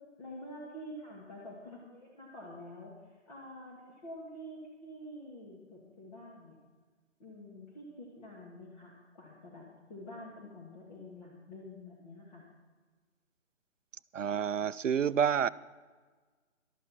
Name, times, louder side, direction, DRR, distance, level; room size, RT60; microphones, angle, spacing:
voice 1, 0.2-2.9 3.3-6.6 7.2-12.5, left 1 dB, 30° left, -5 dB, 2.4 m, -48 dB
voice 2, 14.1-15.5, right 8 dB, 70° right, 17 dB, 0.5 m, -28 dB
14.0 x 12.5 x 4.4 m, 1.4 s
figure-of-eight pair, 155°, 39 cm